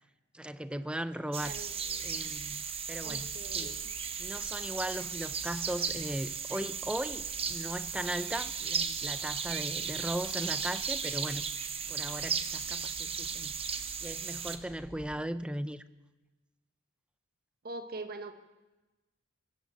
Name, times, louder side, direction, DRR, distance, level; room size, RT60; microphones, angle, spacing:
voice 1, 0.3-1.6 2.0-3.8 4.2-11.5 11.9-13.5 14.0-15.8, right 1 dB, 5° right, 0.4 m, -38 dB
sound 1, 1.3-14.6, right 6 dB, 25° right, 0.8 m, -36 dB
sound 2, 1.4-15.2, left 1 dB, 35° left, 1.1 m, -54 dB
voice 2, 1.4-2.1 3.0-3.9 17.6-18.3, right 3 dB, 45° right, 1.2 m, -43 dB
sound 3, 7.7-14.5, right 5 dB, 70° right, 3.1 m, -61 dB
22.5 x 8.3 x 7.8 m
head